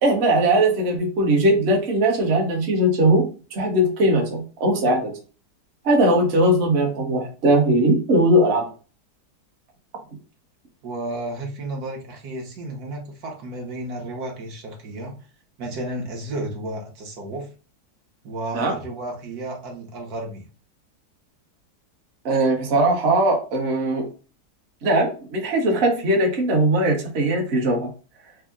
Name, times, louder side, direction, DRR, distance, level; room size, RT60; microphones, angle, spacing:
voice 1, 0.0-3.3 3.5-5.1 5.8-8.7 18.5-18.7 22.2-24.1 24.8-27.9, right 1 dB, 50° right, 1 dB, 0.9 m, -19 dB
voice 2, 10.8-15.1 15.6-17.5 18.2-20.5, right 1 dB, 65° right, 1 dB, 1.3 m, -32 dB
3.5 x 2.0 x 3.5 m, 0.36 s
omnidirectional pair, 1.8 m